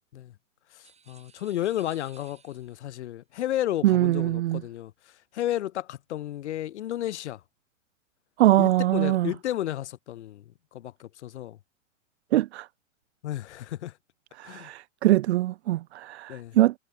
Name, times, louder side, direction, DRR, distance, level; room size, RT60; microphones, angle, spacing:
voice 1, 0.7-7.4 8.6-10.4 10.7-11.6 13.2-13.9 14.4-14.7 16.3-16.6, left 13 dB, 65° left, 2.7 m, -33 dB
sound 1, 0.8-3.0, right 6 dB, 15° right, 8.0 m, -57 dB
voice 2, 3.8-4.6 8.4-9.3 12.3-12.7 14.4-16.7, right 15 dB, 60° right, 1.2 m, -22 dB
hypercardioid pair, 110°, 38 cm